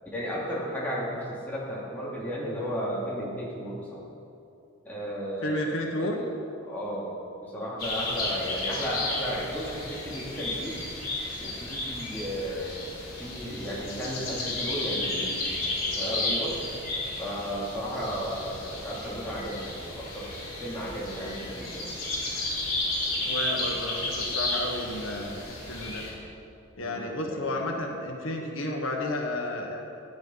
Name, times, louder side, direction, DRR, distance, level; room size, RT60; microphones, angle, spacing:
voice 1, 0.1-4.0 4.8-6.3 6.7-7.1 7.4-10.8 11.4-16.6 17.2-21.9 26.8-27.6, equal, 10° left, -7 dB, 2.7 m, -34 dB
voice 2, 5.4-6.2 23.2-26.0 26.8-29.8, left 1 dB, 75° left, 1 dB, 1.4 m, -32 dB
sound 1, 7.8-26.1, left 2 dB, 45° left, 3.8 m, -33 dB
15.0 x 9.2 x 5.7 m, 2.7 s
head